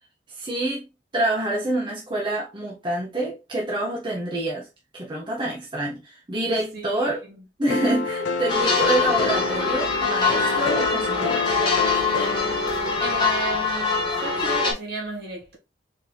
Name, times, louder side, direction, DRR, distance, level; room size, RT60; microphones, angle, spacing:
voice 1, 0.4-0.8 1.1-4.7 4.9-7.2 7.6-11.4, right 1 dB, 25° right, 0.9 m, -27 dB
voice 2, 6.5-7.3 13.0-15.6, right 2 dB, 60° right, 2.2 m, -34 dB
sound 1, 7.7-13.6, left 4 dB, 85° left, 0.4 m, -29 dB
sound 2, 8.5-14.7, left 4 dB, 25° left, 1.2 m, -23 dB
4.3 x 2.8 x 3.3 m
head